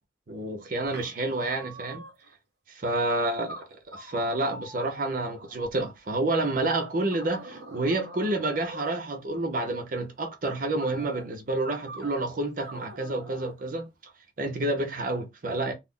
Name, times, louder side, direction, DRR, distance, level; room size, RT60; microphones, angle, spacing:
voice 1, 0.3-2.0 2.8-3.6 3.9-13.9 14.4-15.7, right 2 dB, 50° right, 0.6 m, -29 dB
sound 1, 0.8-2.3 2.9-3.0 3.5-5.9 7.1-9.0 10.8-11.3 11.9-12.2 12.6-13.6, right 2 dB, 65° right, 1.0 m, -45 dB
2.3 x 2.0 x 3.6 m
head